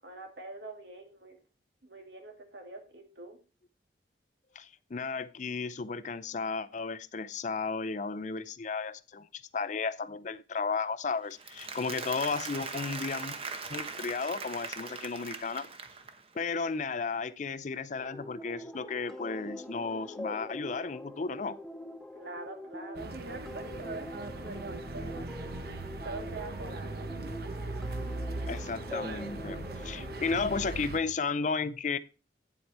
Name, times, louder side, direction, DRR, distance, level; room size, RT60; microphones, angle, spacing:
voice 1, 0.0-1.4 1.8-3.4 22.1-25.3 26.0-27.1, right 2 dB, 75° right, 3 dB, 2.3 m, -45 dB
voice 2, 4.5-13.4 13.7-15.7 16.3-21.6 28.5-32.0, left 4 dB, 40° left, 15 dB, 0.4 m, -34 dB
Applause, 11.3-16.3, right 4 dB, 30° right, 0.9 m, -40 dB
sound 1, 18.0-30.6, left 1 dB, 5° left, 0.6 m, -44 dB
sound 2, 23.0-31.0, right 2 dB, 55° right, 0.8 m, -39 dB
9.3 x 7.9 x 4.2 m, 0.33 s
head